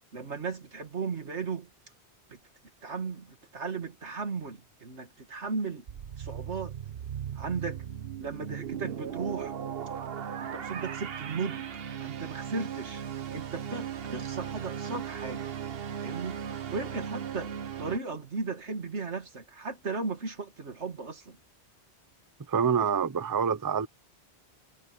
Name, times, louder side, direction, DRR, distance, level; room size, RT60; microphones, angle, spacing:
voice 1, 0.1-1.7 2.3-2.4 2.8-5.8 6.2-6.7 7.4-7.8 8.2-9.5 10.4-13.0 13.3-15.5 16.0-21.4, right 4 dB, 90° right, 2.4 m, -36 dB
sound 1, 5.9-18.0, right 8 dB, 60° right, 1.1 m, -37 dB
voice 2, 22.5-23.9, right 6 dB, 25° right, 0.5 m, -26 dB
omnidirectional pair, 1.1 m